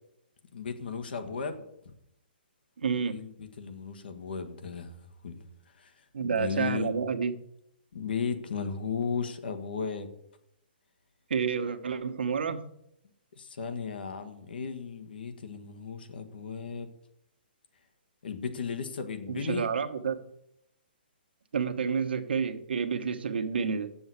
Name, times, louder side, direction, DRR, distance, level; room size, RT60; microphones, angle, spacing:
voice 1, 0.5-1.6 3.0-4.9 5.2-5.4 5.8-5.9 6.2-6.9 7.9-10.1 13.4-16.9 18.2-19.6 23.6-23.7, left 5 dB, 65° left, 8 dB, 1.6 m, -35 dB
voice 2, 2.8-3.2 6.1-7.3 11.3-12.7 19.3-20.2 21.5-23.9, right 6 dB, 70° right, 7 dB, 1.3 m, -29 dB
7.8 x 7.1 x 8.4 m, 0.78 s
hypercardioid pair, 170°, 6 cm